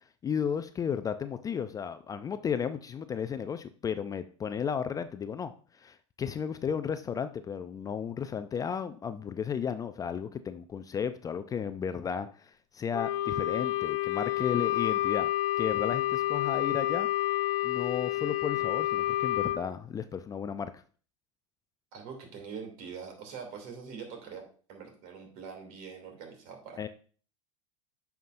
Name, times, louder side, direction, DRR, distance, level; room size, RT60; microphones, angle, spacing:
voice 1, 0.2-15.3 15.6-17.1 17.6-20.8 26.8-26.9, left 7 dB, 20° left, 11 dB, 0.4 m, -34 dB
Wind instrument woodwind instrument, 12.9-19.6, left 15 dB, 70° left, 0.7 m, -29 dB
voice 2, 21.9-24.4 24.7-26.9, right 6 dB, 55° right, 3 dB, 2.8 m, -43 dB
9.2 x 5.8 x 2.6 m, 0.41 s
hypercardioid pair, 105°, 17 cm